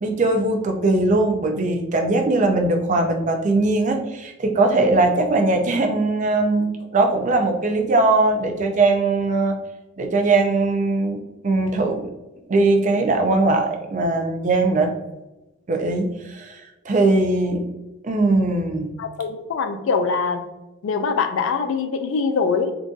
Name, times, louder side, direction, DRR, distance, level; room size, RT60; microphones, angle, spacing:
voice 1, 0.0-9.6 10.0-12.1 12.5-14.9 15.7-17.7 18.0-18.9, right 2 dB, 35° right, 4 dB, 0.4 m, -20 dB
voice 2, 19.0-20.4 20.8-22.7, left 5 dB, 65° left, 8 dB, 0.3 m, -23 dB
3.7 x 2.5 x 2.4 m, 1.0 s
head